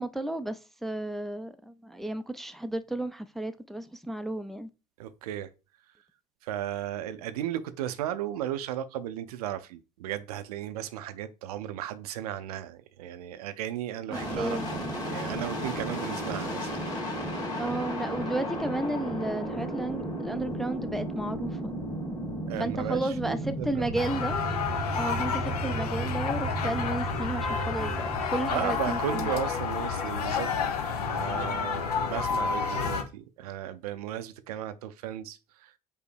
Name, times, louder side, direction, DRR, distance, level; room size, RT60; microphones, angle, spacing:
voice 1, 0.0-4.7 14.1-14.7 17.6-21.7 22.6-24.4 24.9-29.3, right 2 dB, ahead, 0.4 m, -33 dB
voice 2, 5.0-5.5 6.4-16.7 22.5-24.0 28.5-30.5 31.0-35.7, right 11 dB, 75° right, 0.4 m, -35 dB
sound 1, 14.1-29.8, right 1 dB, 20° left, 1.9 m, -34 dB
sound 2, 24.0-33.0, left 6 dB, 80° left, 0.6 m, -30 dB
5.3 x 2.1 x 4.5 m
figure-of-eight pair, 60°, 20 cm